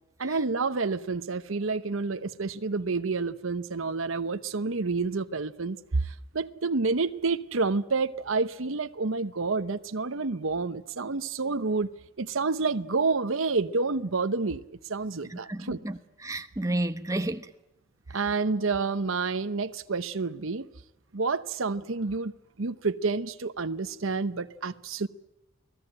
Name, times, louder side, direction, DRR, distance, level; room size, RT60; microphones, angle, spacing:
voice 1, 0.2-11.9 12.2-14.6 14.9-15.8 18.1-20.7 21.1-22.3 22.6-25.1, right 4 dB, 80° right, 0.9 m, -29 dB
voice 2, 15.3-17.5 18.1-18.2, right 1 dB, 15° right, 1.1 m, -32 dB
29.5 x 19.0 x 8.9 m
head